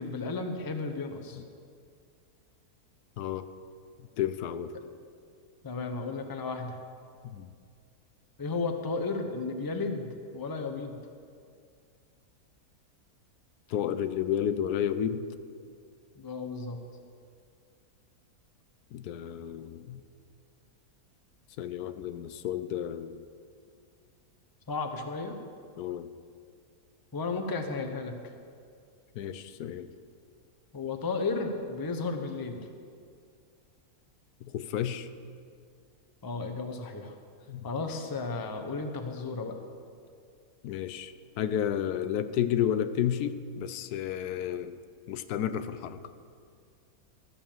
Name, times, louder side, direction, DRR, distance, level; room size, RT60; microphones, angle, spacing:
voice 1, 0.0-1.4 5.6-6.8 8.4-11.0 16.2-16.8 24.7-25.4 27.1-28.3 30.7-32.7 36.2-37.2 37.6-39.5, left 3 dB, 20° left, 6 dB, 0.6 m, -34 dB
voice 2, 3.2-3.5 4.2-4.8 7.2-7.5 13.7-15.3 18.9-20.0 21.6-23.2 25.8-26.1 29.2-29.9 34.4-35.1 37.5-37.7 40.6-44.7 45.1-46.0, left 10 dB, 85° left, 12 dB, 1.1 m, -31 dB
13.5 x 7.1 x 7.3 m, 2.2 s
omnidirectional pair, 1.6 m